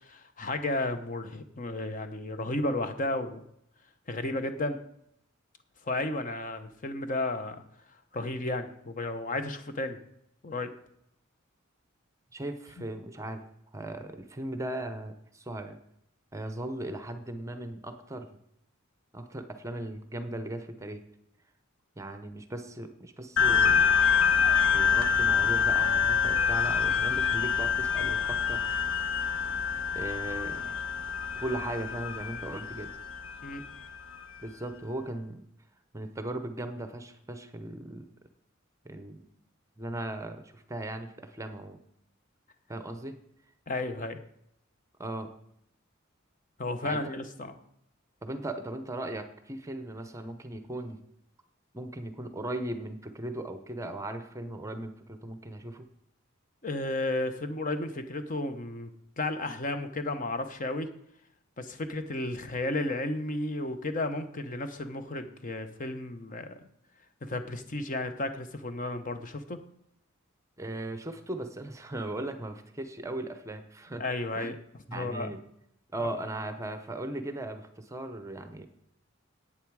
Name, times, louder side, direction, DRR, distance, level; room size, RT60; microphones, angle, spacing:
voice 1, 0.1-3.4 4.1-4.8 5.8-7.6 8.1-10.0 10.4-10.7 12.8-12.9 33.4-33.6 43.7-44.2 46.6-47.5 56.6-58.9 59.2-60.9 61.6-66.7 67.2-69.6 74.0-74.5 74.9-75.3, left 2 dB, 40° left, 9 dB, 0.9 m, -33 dB
voice 2, 12.3-13.5 13.7-15.8 16.3-18.3 19.1-21.0 22.0-24.0 24.7-28.6 29.9-30.8 31.3-32.9 34.4-35.4 35.9-38.1 38.8-39.3 39.8-41.8 42.7-43.2 45.0-45.3 46.8-47.0 48.2-51.0 51.7-55.9 70.6-74.0 74.4-74.5 74.9-75.4 75.9-78.7, right 1 dB, 15° right, 8 dB, 0.8 m, -38 dB
sound 1, 23.4-34.2, left 7 dB, 90° left, 1.1 m, -26 dB
10.5 x 8.7 x 4.7 m, 0.75 s
head